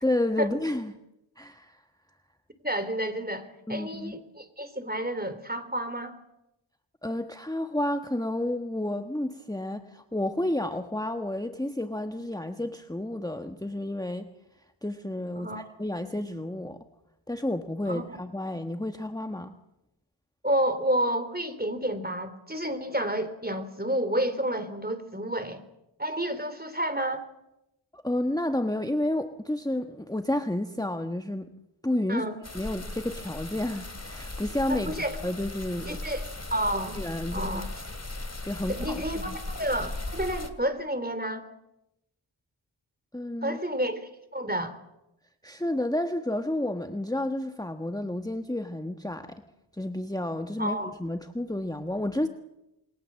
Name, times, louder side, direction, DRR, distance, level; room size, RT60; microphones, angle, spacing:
voice 1, 0.0-0.9 1.4-1.8 3.7-4.1 7.0-14.3 14.8-16.8 17.3-19.5 27.9-31.5 31.8-32.2 32.5-36.0 36.9-37.6 38.4-39.4 43.1-43.6 45.4-49.4 49.7-52.3, left 1 dB, 10° left, 6 dB, 1.3 m, -31 dB
voice 2, 2.6-6.1 15.4-15.6 17.9-18.0 20.4-25.6 26.0-27.2 32.1-32.4 34.7-35.2 35.9-36.2 36.5-37.0 37.3-37.7 38.7-39.3 39.5-41.4 43.4-44.8 50.6-50.9, right 1 dB, 20° right, 10 dB, 3.4 m, -30 dB
sound 1, 32.4-40.5, left 2 dB, 30° left, 2.8 m, -37 dB
28.0 x 22.5 x 7.6 m, 0.90 s
wide cardioid pair, 55°, 47 cm